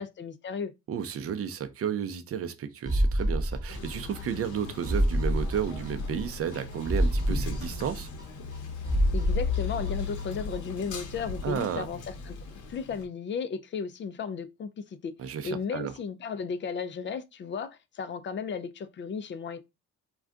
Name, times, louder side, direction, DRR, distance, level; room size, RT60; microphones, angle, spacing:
voice 1, 0.0-0.7 9.1-12.0 12.3-19.6, left 6 dB, 40° left, 0.4 m, -35 dB
voice 2, 0.9-8.1 11.4-11.9 15.2-15.9, right 8 dB, 50° right, 0.5 m, -32 dB
sound 1, 2.9-4.2 4.5-4.6 4.9-6.2 6.5-6.6 6.9-8.6 8.9-10.2 10.5-10.6, right 1 dB, 10° right, 0.8 m, -28 dB
Male speech man speaking, 3.7-13.0, left 6 dB, 75° left, 0.8 m, -37 dB
2.4 x 2.2 x 3.6 m
cardioid pair, 90°, 30 cm